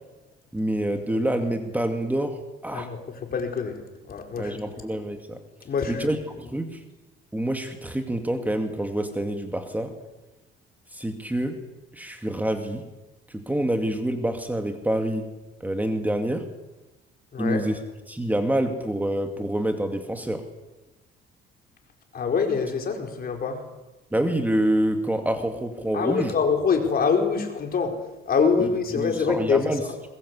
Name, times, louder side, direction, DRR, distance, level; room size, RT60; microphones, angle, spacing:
voice 1, 0.5-2.9 4.4-5.4 5.9-6.8 7.3-9.9 10.9-11.6 11.9-12.8 13.3-15.3 15.6-16.4 17.4-17.8 18.1-20.4 24.1-26.3 28.6-29.8, right 1 dB, 10° right, 5 dB, 2.4 m, -27 dB
voice 2, 3.3-3.7 4.1-4.6 5.6-6.1 17.3-17.6 22.1-23.6 25.9-27.9 28.3-29.9, left 5 dB, 45° left, 4 dB, 4.7 m, -24 dB
22.0 x 21.0 x 8.4 m, 1.1 s
cardioid pair, 110°, 21 cm